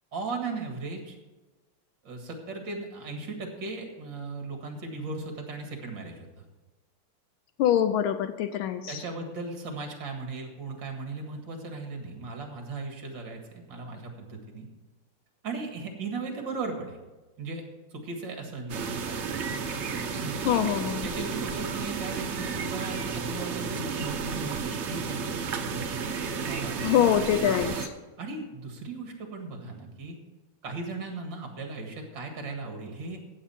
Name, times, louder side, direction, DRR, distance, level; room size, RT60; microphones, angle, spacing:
voice 1, 0.1-1.2 2.0-6.4 8.9-14.7 15.4-17.0 17.4-17.6 17.9-19.3 20.2-20.7 21.0-25.7 26.4-26.8 28.2-30.2 30.6-33.2, right 3 dB, 55° right, 3 dB, 2.4 m, -37 dB
voice 2, 7.6-9.0 20.4-21.1 26.8-27.9, left 10 dB, 75° left, 10 dB, 1.4 m, -24 dB
sound 1, 18.7-27.9, right 5 dB, 90° right, 0.6 m, -32 dB
15.0 x 8.3 x 4.4 m, 1.2 s
omnidirectional pair, 2.4 m